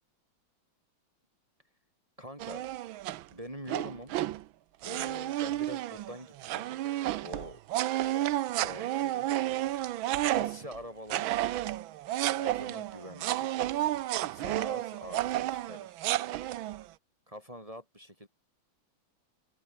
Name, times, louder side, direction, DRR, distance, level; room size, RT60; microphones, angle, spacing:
voice 1, 2.2-2.7 3.3-4.1 4.8-6.7 7.2-7.6 8.4-9.3 10.3-11.8 12.4-13.6 14.3-16.0 17.3-18.3, equal, 15° right, 6.4 m, -45 dB
sound 1, 2.4-3.2 3.7-4.4 4.8-10.8 11.1-16.8, right 14 dB, 80° right, 1.5 m, -31 dB
open air
omnidirectional pair, 2.2 m